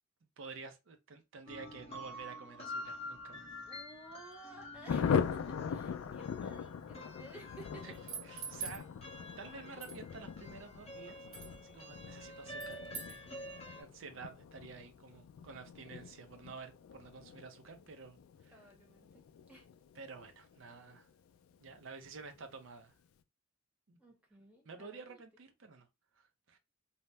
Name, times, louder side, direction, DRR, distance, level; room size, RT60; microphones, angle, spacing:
voice 1, 0.4-3.5 7.8-8.0 8.2-8.8 9.4-11.2 11.6-12.8 13.1-13.5 13.7-18.2 18.4-18.7 20.0-21.1 21.6-22.9 23.9-24.0 24.7-25.9 26.2-26.6, right 4 dB, 65° right, 0.5 m, -50 dB
sound 1, 1.5-13.8, left 1 dB, 30° left, 0.6 m, -49 dB
voice 2, 3.7-7.9 18.5-19.7 24.0-25.2, right 2 dB, 5° right, 0.8 m, -55 dB
Thunder, 4.9-21.0 21.3-21.4 21.7-21.8 22.1-22.5, left 7 dB, 85° left, 0.3 m, -41 dB
sound 2, 7.9-8.8 9.8-10.0 11.3-11.5 12.6-13.2, right 6 dB, 85° right, 1.0 m, -43 dB
2.8 x 2.0 x 3.2 m
head